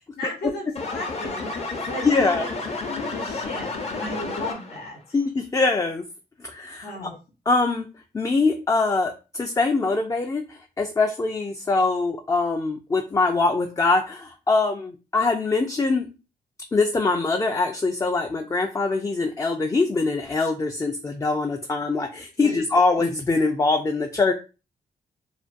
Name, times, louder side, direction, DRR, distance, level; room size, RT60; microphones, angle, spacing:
voice 1, 0.2-1.5 1.9-2.5 2.9-5.0 6.8-7.1 22.4-22.6, left 2 dB, 80° left, -1 dB, 0.9 m, -34 dB
sound 1, 0.8-4.9, left 3 dB, 40° left, 0.7 m, -31 dB
voice 2, 2.0-2.5 5.1-6.0 6.5-6.9 7.5-7.9 8.1-10.4 10.8-16.1 16.7-24.3, left 3 dB, 20° left, 3 dB, 0.3 m, -23 dB
2.5 x 2.2 x 2.5 m, 0.31 s
cardioid pair, 75°, 16 cm